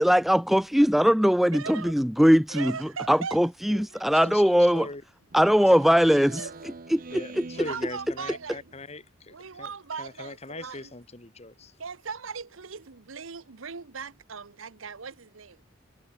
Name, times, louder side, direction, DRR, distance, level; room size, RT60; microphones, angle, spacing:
voice 1, 0.0-4.9 5.3-7.4, equal, ahead, 0.4 m, -21 dB
voice 2, 1.5-1.9 2.5-3.4 3.9-4.3 6.1-6.5 7.5-8.6 9.3-10.9 11.8-15.6, right 5 dB, 85° right, 1.0 m, -39 dB
voice 3, 4.2-5.0 5.7-5.9 7.1-9.7 10.0-11.7, left 2 dB, 30° left, 1.8 m, -40 dB
Speech synthesizer, 5.3-8.8, right 3 dB, 45° right, 0.7 m, -44 dB
head